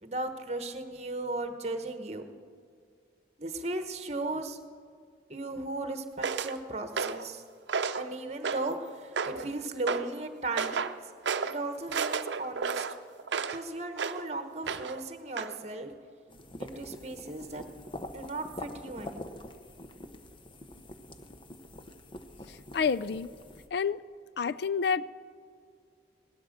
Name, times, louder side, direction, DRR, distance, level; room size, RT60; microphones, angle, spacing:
voice 1, 0.0-2.3 3.4-4.6 5.3-7.4 8.0-10.9 11.4-12.9 13.5-15.9 16.6-17.6 18.0-19.4, right 2 dB, 35° right, 8 dB, 1.1 m, -36 dB
sound 1, 6.2-6.5 7.0-7.3 7.7-8.1 8.4-8.8 9.2-9.5 9.9-10.1 10.6-10.9 11.2-11.6 11.9-13.6 14.0-14.2 14.7-15.0 15.4-15.5, right 5 dB, 80° right, 0.6 m, -32 dB
sound 2, 16.3-23.7, left 1 dB, 30° left, 0.8 m, -45 dB
voice 2, 22.7-23.3 23.7-24.0 24.4-25.1, left 6 dB, 60° left, 16 dB, 0.4 m, -28 dB
17.5 x 12.0 x 6.5 m, 2.2 s
head